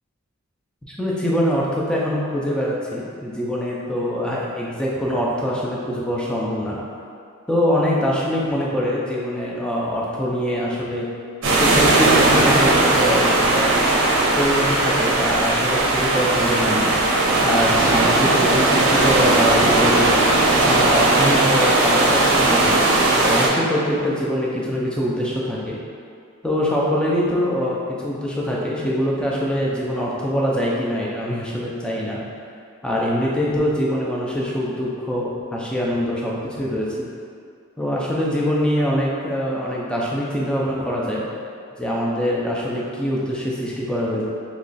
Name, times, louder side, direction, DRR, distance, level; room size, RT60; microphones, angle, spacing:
voice 1, 0.8-6.8 7.5-11.1 11.6-13.8 14.2-16.9 17.4-20.2 20.6-25.8 26.4-32.2 32.8-37.1 37.8-41.2 41.8-44.2, equal, 5° left, -5 dB, 0.4 m, -23 dB
sound 1, 11.4-23.5, right 2 dB, 60° right, 0.6 m, -17 dB
2.9 x 2.3 x 3.9 m, 2.3 s
head